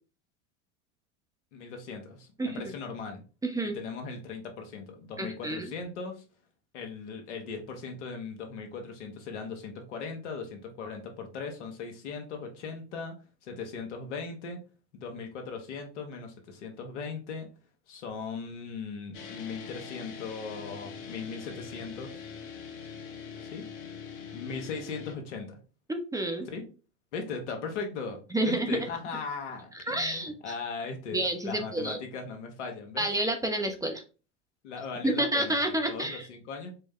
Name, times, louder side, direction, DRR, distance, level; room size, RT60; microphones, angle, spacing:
voice 1, 1.5-3.2 3.7-6.2 6.7-13.1 13.4-14.6 14.9-17.5 17.9-22.2 23.4-23.6 24.3-25.6 26.4-26.6 27.1-33.1 34.6-36.7, left 4 dB, 80° left, 3 dB, 1.2 m, -38 dB
voice 2, 3.4-3.8 5.2-5.7 25.9-26.5 28.3-28.9 29.9-30.3 31.1-32.0 33.0-34.0 35.0-36.3, right 1 dB, 10° right, 4 dB, 0.6 m, -29 dB
Dist Chr A&D strs up, 19.1-25.1, left 6 dB, 60° left, 1.2 m, -43 dB
4.4 x 2.1 x 3.6 m, 0.35 s
hypercardioid pair, 90°, 35 cm